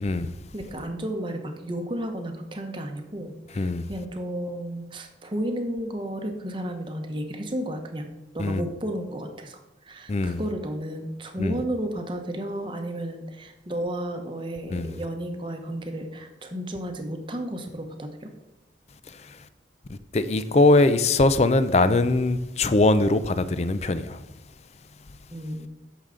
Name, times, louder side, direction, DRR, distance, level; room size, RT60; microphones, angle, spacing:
voice 1, 0.0-0.3 3.6-3.9 8.4-8.7 10.1-10.4 11.4-11.6 14.7-15.0 19.1-19.4 19.9-24.2, left 2 dB, 35° left, 0.4 m, -22 dB
voice 2, 0.5-8.1 8.3-18.3 25.3-25.7, right 1 dB, 25° right, 0.9 m, -33 dB
8.9 x 6.5 x 3.8 m
head